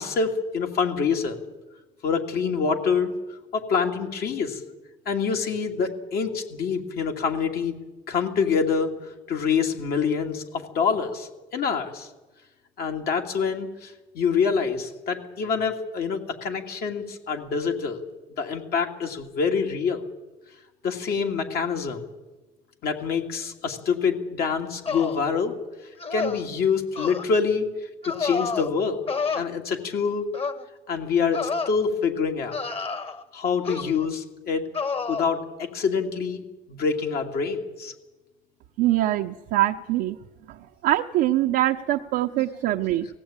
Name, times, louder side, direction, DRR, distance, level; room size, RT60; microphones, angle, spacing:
voice 1, 0.0-1.4 2.0-3.1 3.5-4.6 5.1-7.7 8.1-12.1 12.8-18.0 18.4-20.0 20.8-22.0 22.8-25.5 26.1-27.7 28.0-29.1 29.3-30.3 30.9-31.4 31.7-32.6 33.3-34.7 35.1-36.4 36.7-37.9, left 5 dB, 65° left, 3 dB, 2.6 m, -26 dB
sound 1, 24.8-25.3 26.0-26.5 26.9-27.2 28.0-28.7 29.1-29.4 30.3-30.6 31.3-31.7 32.5-33.2 33.6-34.1 34.7-35.3, left 4 dB, 35° left, 1.5 m, -29 dB
voice 2, 38.8-40.2 40.5-40.6 40.8-43.1, right 14 dB, 85° right, 2 dB, 0.8 m, -23 dB
19.0 x 16.0 x 8.9 m, 1.1 s
cardioid pair, 110°, 17 cm